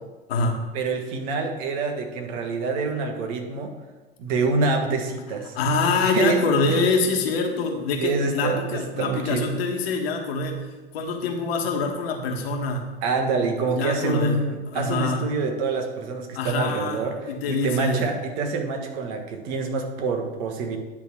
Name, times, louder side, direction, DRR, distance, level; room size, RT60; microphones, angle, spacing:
voice 1, 0.7-3.7 4.2-5.6 6.0-6.4 6.7-6.8 8.0-9.5 13.0-20.8, right 4 dB, 55° right, 4 dB, 1.5 m, -26 dB
voice 2, 5.5-10.7 10.9-12.9 13.7-14.3 14.7-15.2 16.3-18.1, left 3 dB, 65° left, 2 dB, 1.5 m, -25 dB
10.0 x 3.6 x 6.3 m, 1.2 s
hypercardioid pair, 85°, 32 cm